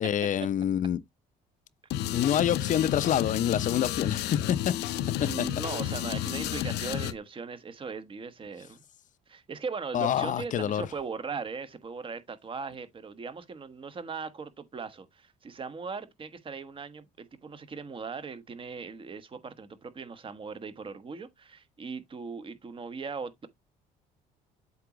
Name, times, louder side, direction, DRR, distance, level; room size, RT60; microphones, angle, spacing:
voice 1, 0.0-1.0 2.1-4.7 9.9-10.9, left 10 dB, 50° left, 0.7 m, -26 dB
sound 1, 1.9-7.1, left 12 dB, 80° left, 0.7 m, -31 dB
voice 2, 5.2-8.8 9.3-23.5, right 5 dB, 30° right, 1.3 m, -39 dB
7.9 x 3.0 x 5.0 m
cardioid pair, 110°, 17 cm